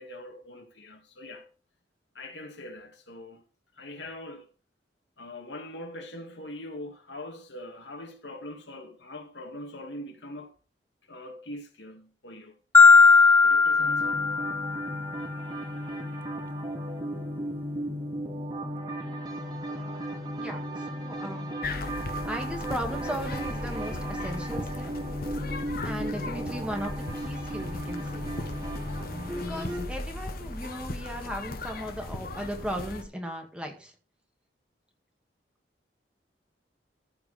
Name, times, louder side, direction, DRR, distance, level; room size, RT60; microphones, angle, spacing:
voice 1, 0.0-1.5 2.1-3.4 3.7-4.5 5.2-10.5 11.1-12.6 13.4-14.2, left 1 dB, 75° left, 2.2 m, -42 dB
Marimba xylophone, 12.7-14.9, left 4 dB, 10° left, 0.5 m, -17 dB
sound 1, 13.8-29.9, equal, 25° right, 2.5 m, -35 dB
voice 2, 19.7-20.0 20.4-21.5 22.3-24.9 25.8-28.3 29.3-33.9, equal, 5° right, 2.0 m, -37 dB
sound 2, 21.6-33.0, left 2 dB, 55° left, 1.3 m, -37 dB
14.5 x 4.9 x 5.1 m
head